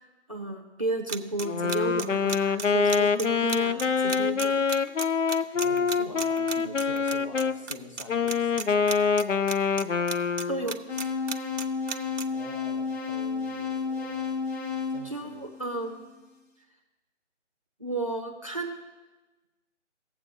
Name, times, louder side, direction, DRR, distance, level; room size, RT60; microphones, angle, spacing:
voice 1, 0.3-4.7 10.5-10.8 15.0-16.0 17.8-18.8, right 2 dB, 30° right, 2 dB, 0.5 m, -32 dB
sound 1, 1.1-7.4 7.7-8.0 8.3-9.8 10.1-12.2, right 5 dB, 90° right, 0.7 m, -33 dB
Wind instrument woodwind instrument, 1.4-7.6 8.1-10.7, left 5 dB, 90° left, 0.6 m, -25 dB
voice 2, 5.5-8.7 12.3-14.4 14.9-15.5, left 2 dB, 25° left, 0 dB, 1.2 m, -45 dB
sound 2, 10.9-16.0, left 5 dB, 60° left, 1.5 m, -32 dB
17.0 x 7.5 x 2.7 m, 1.2 s
figure-of-eight pair, 155°, 36 cm